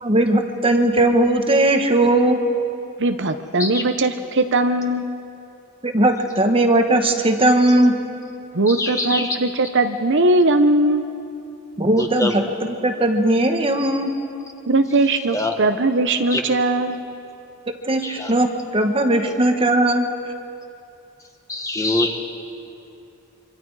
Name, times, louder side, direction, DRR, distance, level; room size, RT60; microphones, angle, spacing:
voice 1, 0.0-2.4 5.8-8.0 11.8-14.1 17.8-18.5 18.7-20.1, right 1 dB, 25° right, 5 dB, 1.2 m, -18 dB
voice 2, 3.0-5.1 8.5-11.0 14.7-17.0, right 2 dB, 55° right, 7 dB, 0.8 m, -19 dB
voice 3, 8.7-9.4 12.0-12.6 15.3-15.5 16.3-16.4 18.0-18.3 21.5-22.2, left 2 dB, 15° left, 3 dB, 1.6 m, -24 dB
25.5 x 24.5 x 4.8 m, 2.7 s
head